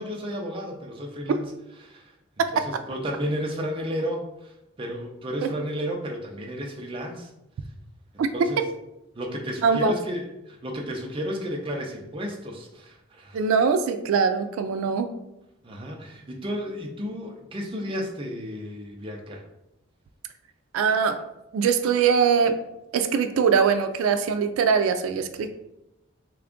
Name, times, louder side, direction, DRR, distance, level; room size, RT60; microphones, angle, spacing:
voice 1, 0.0-1.4 1.8-2.1 2.5-7.3 8.1-8.6 9.1-13.4 15.6-19.4, equal, 25° right, 1 dB, 0.5 m, -33 dB
voice 2, 2.4-2.8 8.2-8.3 8.6-8.7 9.6-9.9 13.3-15.1 20.7-21.2 21.5-22.6 22.9-25.5, right 6 dB, 90° right, 8 dB, 0.3 m, -22 dB
3.4 x 2.3 x 3.7 m, 0.90 s
head